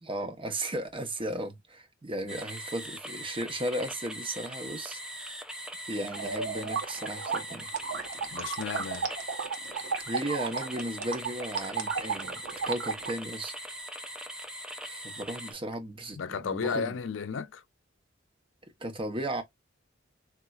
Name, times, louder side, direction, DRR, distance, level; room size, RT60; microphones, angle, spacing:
voice 1, 0.0-5.0 5.9-7.7 10.1-13.5 14.8-16.9 18.8-19.4, right 1 dB, 30° right, 0.8 m, -35 dB
sound 1, 2.3-15.5, equal, 5° right, 0.5 m, -41 dB
sound 2, 6.1-13.1, right 5 dB, 75° right, 0.9 m, -34 dB
voice 2, 8.3-9.1 16.1-17.6, left 6 dB, 75° left, 0.5 m, -33 dB
4.1 x 2.3 x 2.3 m
head